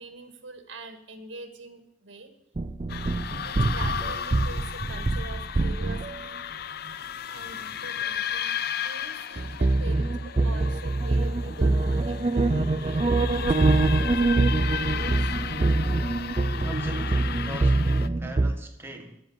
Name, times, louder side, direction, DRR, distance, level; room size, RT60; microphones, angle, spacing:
voice 1, 0.0-2.3 3.4-6.4 7.3-13.2 13.5-15.7, right 2 dB, 75° right, 6 dB, 1.8 m, -44 dB
sound 1, 2.6-6.3 9.4-18.5, right 2 dB, 30° right, 0.5 m, -24 dB
sound 2, 2.9-18.1, left 8 dB, 55° left, 0.5 m, -35 dB
voice 2, 16.5-19.2, right 1 dB, 15° right, 3 dB, 1.6 m, -38 dB
10.5 x 7.9 x 9.1 m, 0.78 s
head